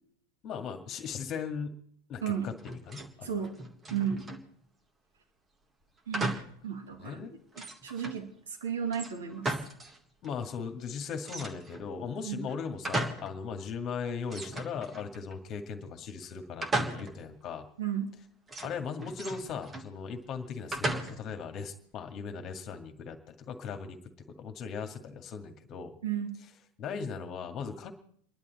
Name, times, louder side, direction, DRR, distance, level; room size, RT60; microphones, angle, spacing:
voice 1, 0.4-1.7 2.1-3.4 4.1-4.2 6.9-7.3 10.2-17.7 18.6-24.0 24.4-25.9 26.3-26.5 26.8-27.9, left 6 dB, 35° left, 6 dB, 2.0 m, -38 dB
sound 1, 2.6-3.1 3.4-4.5 6.1-6.6 7.0-7.1 7.5-8.2 8.9-10.0 10.2-10.3 11.2-11.9 12.4-13.4 13.7-13.8 14.3-15.3 16.6-17.3 18.5-19.9 20.7-21.4, right 2 dB, 20° right, 1.8 m, -36 dB
voice 2, 3.3-3.6 3.9-4.3 6.1-7.2 7.8-8.3 8.6-9.5 12.3-12.4 17.8-18.2 26.0-26.3, right 8 dB, 70° right, 3 dB, 2.5 m, -33 dB
29.0 x 11.0 x 4.2 m, 0.65 s
figure-of-eight pair, 85°, 0 cm